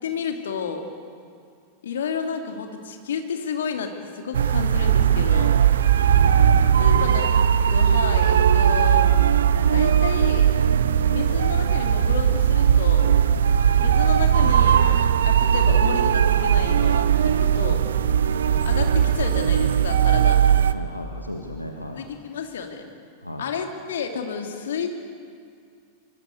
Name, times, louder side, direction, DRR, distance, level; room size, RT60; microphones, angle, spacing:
voice 1, 0.0-0.8 1.8-5.6 6.8-9.1 9.7-10.5 11.1-13.1 13.7-17.8 18.6-20.4 21.9-22.9 23.4-24.9, left 6 dB, 65° left, 4 dB, 2.7 m, -31 dB
sound 1, 4.3-20.7, right 8 dB, 65° right, 0.9 m, -18 dB
voice 2, 6.7-7.1 7.7-7.9 20.7-22.0 23.2-23.4, left 1 dB, 85° left, 3 dB, 1.8 m, -36 dB
24.5 x 24.0 x 8.3 m, 2.3 s
figure-of-eight pair, 90°, 0 cm